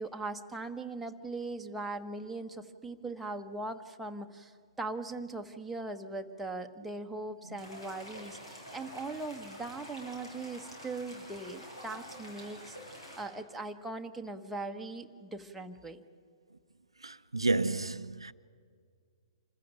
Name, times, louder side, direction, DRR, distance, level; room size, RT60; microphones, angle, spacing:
voice 1, 0.0-16.0, right 2 dB, 5° right, 1.2 m, -40 dB
sound 1, 7.6-13.2, equal, 80° left, 7.4 m, -47 dB
voice 2, 17.0-18.3, right 3 dB, 85° right, 0.6 m, -31 dB
26.5 x 15.0 x 9.1 m
figure-of-eight pair, 120°, 3 cm